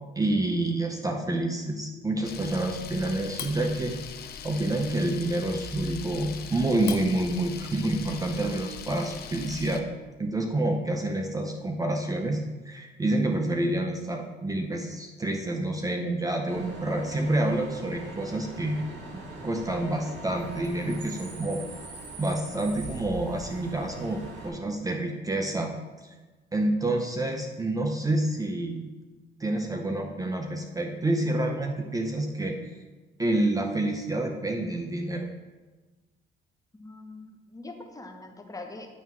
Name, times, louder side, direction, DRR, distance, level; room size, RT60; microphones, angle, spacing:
voice 1, 0.2-4.0 4.4-9.9 10.2-18.8 19.1-21.6 22.2-25.7 26.5-28.8 29.4-32.6 33.2-35.3, right 1 dB, 20° right, 3 dB, 0.7 m, -28 dB
Camera, 2.2-9.8, left 7 dB, 55° left, 0.7 m, -40 dB
Bus / Idling / Screech, 16.5-24.5, right 2 dB, 80° right, 1.8 m, -41 dB
voice 2, 36.7-38.9, left 2 dB, 20° left, 3 dB, 1.0 m, -43 dB
9.3 x 3.5 x 6.0 m, 1.2 s
cardioid pair, 100°, 19 cm